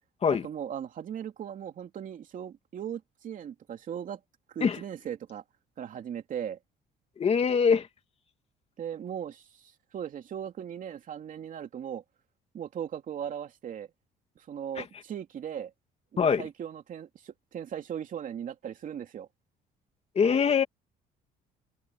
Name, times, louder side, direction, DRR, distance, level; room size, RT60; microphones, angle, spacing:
voice 1, 0.3-4.2 4.5-5.4 5.8-6.6 8.8-12.0 12.5-13.9 14.4-15.7 16.1-19.3, right 9 dB, 50° right, 2.9 m, -38 dB
voice 2, 7.2-7.9 14.8-14.9 16.2-16.5 20.1-20.6, left 6 dB, 35° left, 2.5 m, -23 dB
cardioid pair, 110°, 17 cm